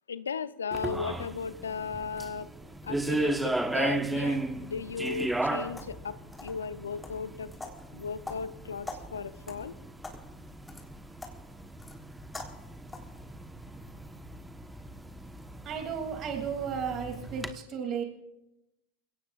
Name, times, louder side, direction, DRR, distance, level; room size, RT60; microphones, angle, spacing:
voice 1, 0.1-2.5 2.8-7.5 7.9-9.7, left 5 dB, 85° left, 14 dB, 0.7 m, -36 dB
sound 1, 0.7-17.5, right 2 dB, 5° right, 1.3 m, -36 dB
sound 2, 5.0-13.2, left 2 dB, 15° left, 3.9 m, -47 dB
voice 2, 15.6-18.0, right 7 dB, 40° right, 2 dB, 2.9 m, -34 dB
28.5 x 17.5 x 2.5 m, 0.91 s
hypercardioid pair, 85°, 0 cm